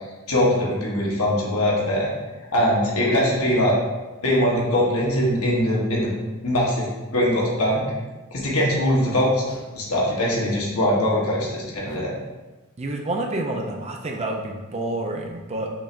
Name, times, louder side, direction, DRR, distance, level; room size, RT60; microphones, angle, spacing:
voice 1, 0.3-2.1 2.5-3.7 4.2-6.1 6.4-6.9 7.1-7.8 8.3-12.1, equal, 80° left, -4 dB, 1.2 m, -21 dB
voice 2, 12.8-15.7, right 2 dB, 30° right, 2 dB, 0.5 m, -28 dB
5.8 x 3.2 x 2.5 m, 1.2 s
head